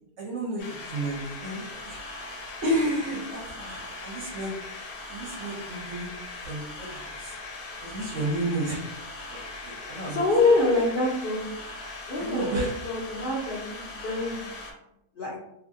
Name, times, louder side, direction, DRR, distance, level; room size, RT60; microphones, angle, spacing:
voice 1, 0.2-2.0 2.6-4.5 5.1-6.1 6.4-7.3 7.8-8.8 9.3-10.2 12.2-12.7, right 1 dB, 60° right, -2 dB, 0.8 m, -31 dB
sound 1, 0.6-14.7, left 2 dB, 85° left, 1.2 m, -40 dB
voice 2, 10.0-11.4 12.1-14.4 15.2-15.4, left 2 dB, 70° left, -5 dB, 0.5 m, -25 dB
2.8 x 2.6 x 2.6 m, 0.81 s
omnidirectional pair, 1.7 m